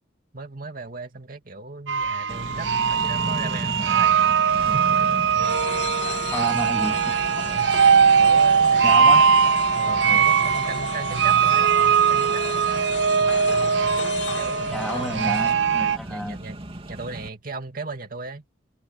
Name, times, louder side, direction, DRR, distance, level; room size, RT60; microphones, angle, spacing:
voice 1, 0.3-4.1 4.7-4.9 7.4-7.7 8.2-11.7 12.1-12.9 14.3-15.1 16.1-16.6 16.9-18.4, right 3 dB, 50° right, 2.4 m, -37 dB
sound 1, 1.9-16.0, right 6 dB, 75° right, 0.6 m, -20 dB
Accelerating revving vroom, 2.3-17.3, right 1 dB, 30° right, 2.6 m, -37 dB
sound 2, 5.4-15.5, left 4 dB, 75° left, 2.7 m, -34 dB
voice 2, 6.3-7.2 8.8-9.2 10.0-10.2 14.7-16.4, equal, ahead, 2.0 m, -31 dB
head